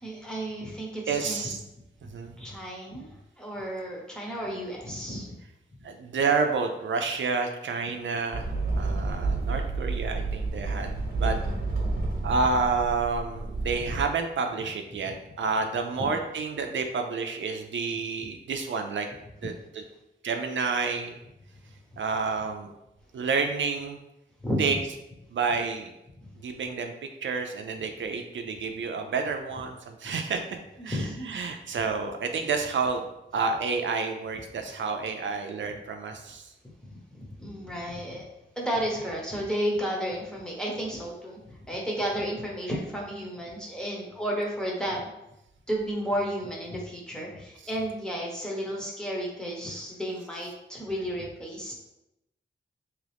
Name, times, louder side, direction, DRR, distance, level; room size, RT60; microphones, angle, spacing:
voice 1, 0.0-1.5 2.4-5.3 11.9-12.0 15.0-15.1 16.0-16.1 24.4-24.6 26.2-26.3 30.0-30.1 30.8-31.4 37.1-38.2 38.6-45.1 45.7-51.7, equal, 5° left, -3 dB, 1.0 m, -32 dB
voice 2, 1.1-1.6 2.0-2.3 5.8-8.5 8.8-10.9 11.2-11.4 12.2-19.1 19.4-19.5 20.2-21.1 22.0-22.7 23.1-24.0 24.6-24.8 25.3-25.9 26.4-26.9 27.2-30.4 30.8-33.0 33.3-36.5, right 4 dB, 85° right, 4 dB, 0.5 m, -29 dB
sound 1, 8.3-14.0, right 3 dB, 50° right, 1.0 m, -30 dB
3.7 x 3.0 x 3.4 m, 0.89 s
wide cardioid pair, 105°, 19 cm